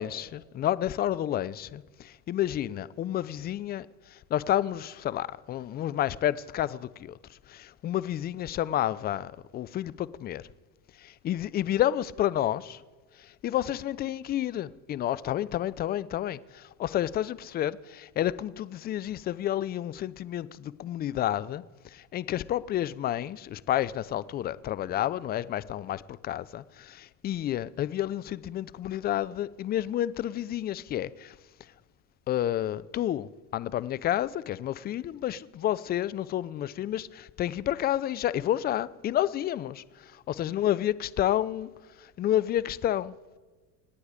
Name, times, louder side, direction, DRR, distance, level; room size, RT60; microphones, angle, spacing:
voice 1, 0.0-7.2 7.5-10.4 11.0-12.8 13.2-21.6 21.9-31.3 32.3-39.8 40.3-41.7 42.0-43.1, left 12 dB, 20° left, 0.4 m, -30 dB
27.0 x 9.8 x 5.0 m
hypercardioid pair, 95°, 49 cm